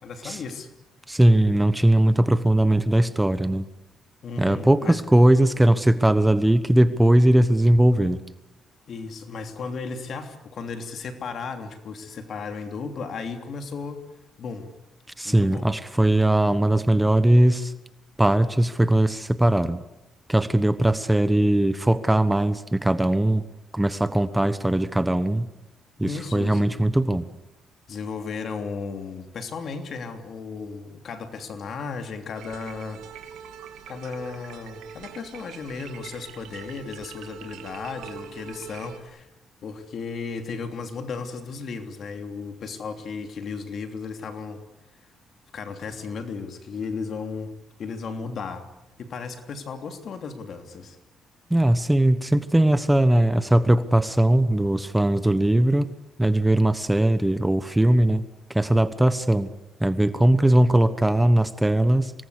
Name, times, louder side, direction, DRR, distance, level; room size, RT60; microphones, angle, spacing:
voice 1, 0.0-0.7 4.2-5.0 8.9-14.0 14.4-14.7 15.2-15.7 26.0-26.7 27.9-33.0 33.9-39.3 39.6-44.6 45.5-47.5 47.8-48.7 49.0-51.0, left 5 dB, 60° left, 6 dB, 3.1 m, -35 dB
voice 2, 1.1-3.6 4.4-8.2 15.2-17.7 18.2-19.8 20.3-23.4 23.7-25.5 26.0-27.3 51.5-55.9 56.2-58.2 58.5-59.5 59.8-62.1, right 1 dB, 10° right, 13 dB, 1.2 m, -20 dB
sound 1, 32.3-39.0, right 8 dB, 85° right, 2.6 m, -43 dB
25.5 x 19.5 x 8.3 m, 0.93 s
cardioid pair, 90°, 0 cm